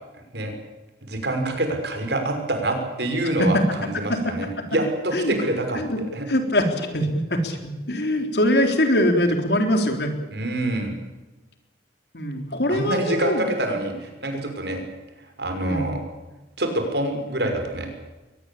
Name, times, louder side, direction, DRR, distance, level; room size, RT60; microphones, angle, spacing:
voice 1, 1.0-6.3 10.3-10.9 12.7-14.8 15.4-16.0 16.6-17.9, right 1 dB, 70° right, 5 dB, 6.1 m, -26 dB
voice 2, 3.4-3.8 4.1-4.6 5.1-5.3 5.7-6.0 6.3-10.1 12.1-13.5 15.6-15.9, left 1 dB, 65° left, 5 dB, 4.2 m, -23 dB
22.5 x 20.0 x 8.7 m, 1.1 s
head